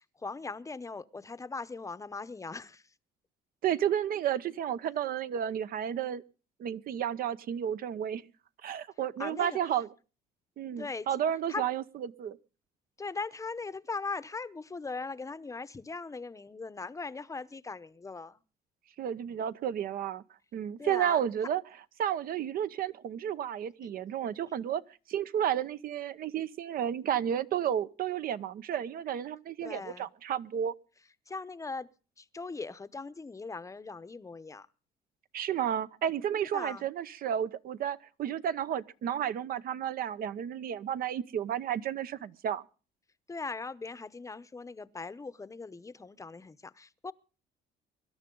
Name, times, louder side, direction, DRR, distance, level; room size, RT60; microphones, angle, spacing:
voice 1, 0.0-2.8 9.2-9.6 10.7-11.1 11.5-11.6 13.0-18.4 20.8-21.2 29.6-30.1 31.3-31.9 32.2-34.7 36.5-36.9 43.3-47.1, left 4 dB, 20° left, 0.8 m, -39 dB
voice 2, 3.6-6.2 6.6-8.2 8.6-9.9 10.6-12.4 19.0-20.2 20.5-21.6 22.0-24.8 25.1-30.7 35.3-42.6, right 9 dB, 60° right, 0.9 m, -32 dB
24.5 x 12.0 x 3.8 m
cardioid pair, 110°, 17 cm